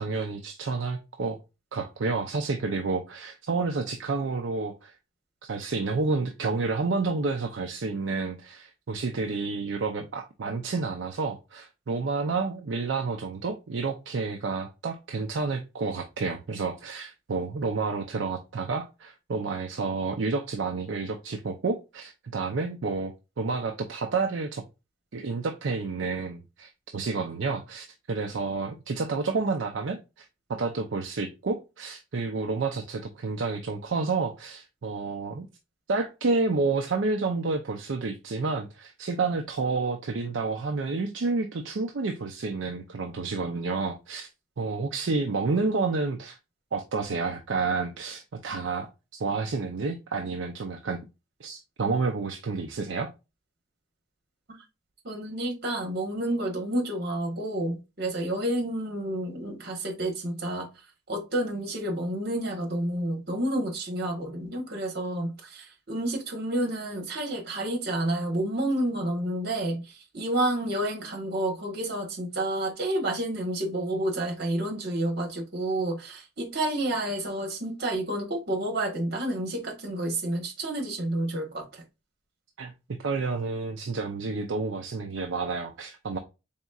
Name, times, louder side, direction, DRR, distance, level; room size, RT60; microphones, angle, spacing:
voice 1, 0.0-1.4 1.7-4.9 5.4-24.6 25.1-35.5 35.9-44.3 44.6-46.4 46.7-51.0 51.4-53.1 82.6-82.7 83.0-86.2, right 4 dB, 65° right, 0.5 m, -30 dB
voice 2, 55.0-60.7 61.1-81.8, right 1 dB, 50° right, 1.3 m, -30 dB
4.1 x 3.6 x 2.3 m
head